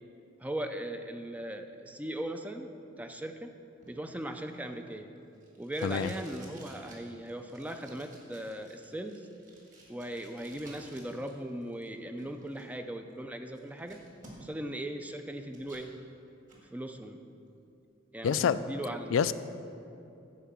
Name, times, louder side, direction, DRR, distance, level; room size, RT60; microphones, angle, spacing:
voice 1, 0.4-2.7 3.0-3.5 3.9-5.1 5.6-9.3 9.9-14.0 14.4-15.9 16.7-17.2 18.1-19.2, right 1 dB, 10° right, 6 dB, 0.4 m, -38 dB
Packing tape duct tape, 3.8-11.3 11.6-12.6 13.1-13.2 13.5-14.7 15.1-15.9 16.3-16.6, right 2 dB, 40° right, 2.0 m, -55 dB
voice 2, 5.8-6.1 18.2-18.6 19.1-19.3, left 7 dB, 85° left, 14 dB, 0.4 m, -26 dB
10.5 x 4.6 x 7.4 m, 2.8 s
head